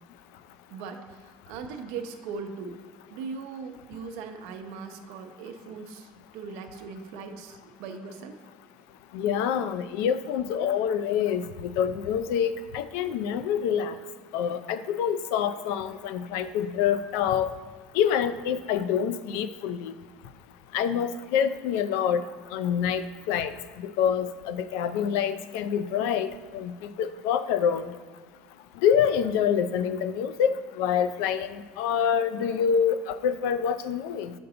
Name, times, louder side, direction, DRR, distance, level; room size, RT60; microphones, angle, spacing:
voice 1, 0.7-2.8 3.1-8.4, right 5 dB, 70° right, 5 dB, 0.7 m, -39 dB
voice 2, 9.1-14.0 14.3-17.5 17.9-19.9 20.7-22.2 22.5-23.5 24.0-26.7 27.0-27.9 28.8-34.3, left 8 dB, 70° left, 12 dB, 0.4 m, -26 dB
6.8 x 5.3 x 3.9 m, 1.5 s
cardioid pair, 155°, 4 cm